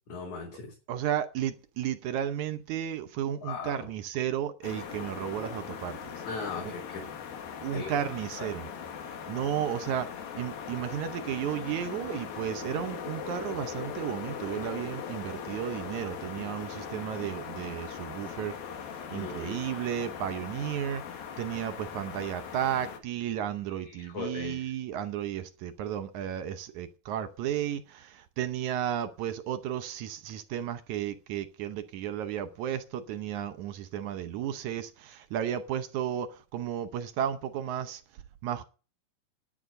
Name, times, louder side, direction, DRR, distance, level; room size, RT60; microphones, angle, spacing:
voice 1, 0.1-0.7 3.4-3.9 6.2-7.1 7.7-7.9 8.4-8.5 19.1-19.8 23.8-24.7, left 4 dB, 50° left, 4.8 m, -38 dB
voice 2, 0.9-6.1 6.6-6.7 7.6-8.7 9.3-18.6 19.1-38.0 38.4-38.6, right 10 dB, 75° right, 1.8 m, -33 dB
sound 1, 4.6-23.0, left 7 dB, 75° left, 3.6 m, -40 dB
11.5 x 9.7 x 6.5 m
omnidirectional pair, 4.4 m